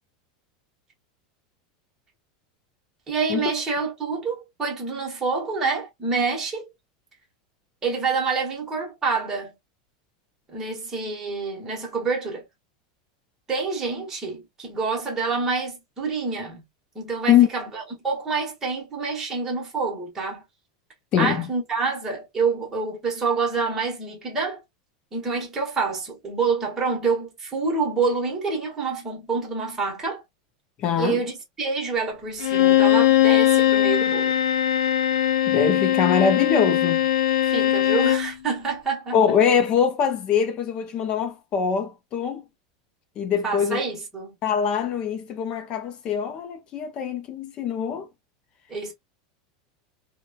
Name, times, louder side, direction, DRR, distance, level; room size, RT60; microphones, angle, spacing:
voice 1, 3.1-6.7 7.8-9.5 10.5-12.4 13.5-16.6 16.9-20.4 21.2-24.6 25.1-30.2 31.0-34.4 37.4-39.2 43.4-44.3 48.7-48.9, right 4 dB, 10° right, 0.9 m, -27 dB
voice 2, 21.1-21.5 30.8-31.2 35.5-37.1 39.1-42.4 43.2-43.8 44.4-48.1, left 7 dB, 25° left, 0.4 m, -23 dB
Bowed string instrument, 32.4-38.3, left 12 dB, 75° left, 0.7 m, -20 dB
3.0 x 2.1 x 2.2 m
supercardioid pair, 170°, 3 cm